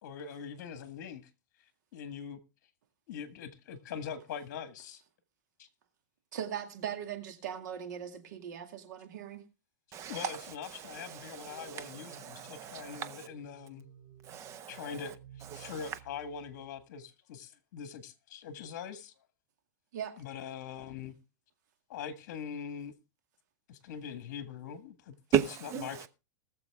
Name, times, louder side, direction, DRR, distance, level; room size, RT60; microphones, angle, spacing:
voice 1, 0.0-1.3 1.9-2.4 3.1-5.0 5.6-5.7 10.1-13.8 14.7-15.2 15.5-19.1 20.2-21.1 21.9-23.0 23.7-25.4 25.8-26.1, left 7 dB, 60° left, 1.6 m, -42 dB
voice 2, 6.3-9.4 19.9-20.2, right 9 dB, 70° right, 2.3 m, -39 dB
voice 3, 9.9-13.3 14.3-15.1 15.5-16.0 25.3-26.1, right 9 dB, 30° right, 0.9 m, -36 dB
sound 1, 11.5-16.8, right 8 dB, 50° right, 2.5 m, -56 dB
20.0 x 7.1 x 3.5 m
supercardioid pair, 145°, 10 cm